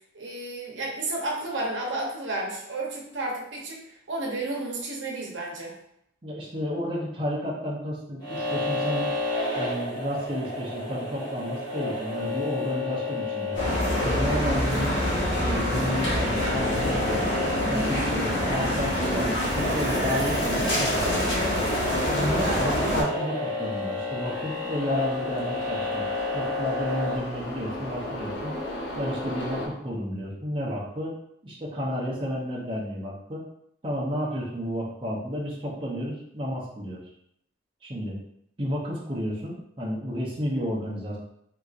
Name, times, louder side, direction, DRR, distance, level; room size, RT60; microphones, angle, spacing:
voice 1, 0.1-3.8 4.1-5.7, right 2 dB, 75° right, -2 dB, 0.8 m, -32 dB
voice 2, 6.2-9.1 9.6-13.5 14.0-15.0 15.4-17.3 17.7-21.1 22.1-26.1 26.3-28.5 28.9-31.2 31.4-33.4 33.8-37.0 37.8-38.2 38.6-41.2, equal, 25° right, -6 dB, 0.6 m, -31 dB
sound 1, 8.2-27.2, left 2 dB, 20° left, 1.2 m, -31 dB
sound 2, 13.5-23.0, equal, 85° left, 1.3 m, -26 dB
sound 3, 23.5-29.7, left 1 dB, 65° left, 0.7 m, -36 dB
3.7 x 2.8 x 2.4 m, 0.73 s
head